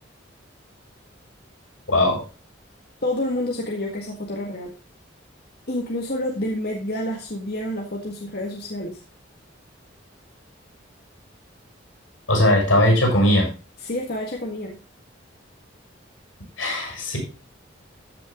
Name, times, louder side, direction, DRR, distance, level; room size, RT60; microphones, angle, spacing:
voice 1, 1.9-2.2 12.3-13.5 16.6-17.2, left 1 dB, 85° left, 1 dB, 6.5 m, -19 dB
voice 2, 3.0-4.7 5.7-9.0 13.8-14.8, left 1 dB, 55° left, 0 dB, 1.7 m, -28 dB
14.0 x 6.1 x 3.7 m, 0.34 s
head